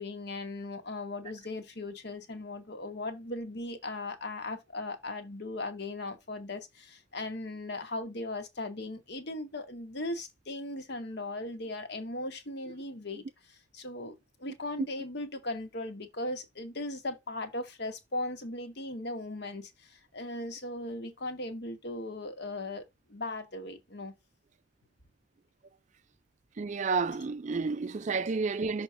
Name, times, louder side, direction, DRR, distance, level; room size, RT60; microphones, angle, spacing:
voice 1, 0.0-13.3 13.7-24.1, left 2 dB, 60° left, 1.3 m, -38 dB
voice 2, 26.6-28.8, right 4 dB, 40° right, 0.4 m, -30 dB
6.2 x 3.0 x 5.6 m
head